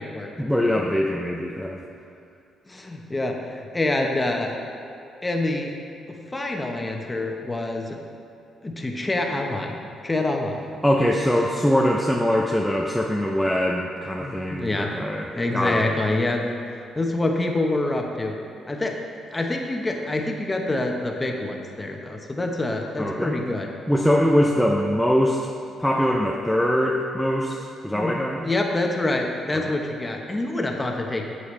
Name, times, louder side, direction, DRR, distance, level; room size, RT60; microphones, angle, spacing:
voice 1, 0.4-1.8 10.8-16.0 23.0-23.4 23.9-25.5 25.8-28.5 29.5-29.7, equal, 5° left, -1 dB, 0.6 m, -22 dB
voice 2, 2.7-4.5 5.2-5.7 6.1-8.0 8.6-9.8 10.0-10.7 14.2-15.1 15.3-16.5 16.7-18.3 18.7-19.0 19.3-23.7 27.9-28.2 28.4-31.3, left 2 dB, 20° left, 2 dB, 1.0 m, -26 dB
8.3 x 7.8 x 3.2 m, 2.6 s
cardioid pair, 90°, 0 cm